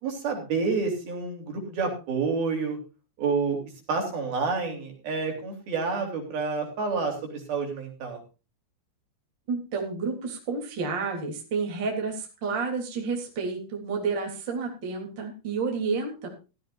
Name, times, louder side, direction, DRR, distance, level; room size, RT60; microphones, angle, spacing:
voice 1, 0.0-2.8 3.2-3.6 3.9-8.2, right 4 dB, 50° right, 2 dB, 5.1 m, -29 dB
voice 2, 9.5-16.3, right 4 dB, 25° right, 1 dB, 3.3 m, -30 dB
16.5 x 14.5 x 2.6 m, 0.31 s
omnidirectional pair, 5.7 m